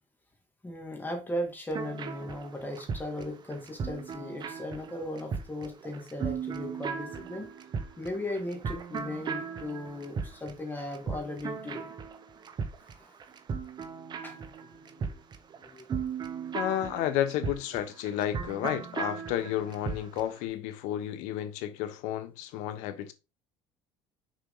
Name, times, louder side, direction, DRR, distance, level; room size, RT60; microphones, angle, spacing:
voice 1, 0.6-7.5 8.0-11.9 13.0-13.1 14.2-14.5 14.7-15.2 15.6-16.1, left 1 dB, 15° left, 2.4 m, -37 dB
sound 1, 1.7-20.3, right 6 dB, 35° right, 1.0 m, -37 dB
voice 2, 16.5-23.1, left 11 dB, 80° left, 1.2 m, -32 dB
6.6 x 4.6 x 3.9 m
supercardioid pair, 110°, 12 cm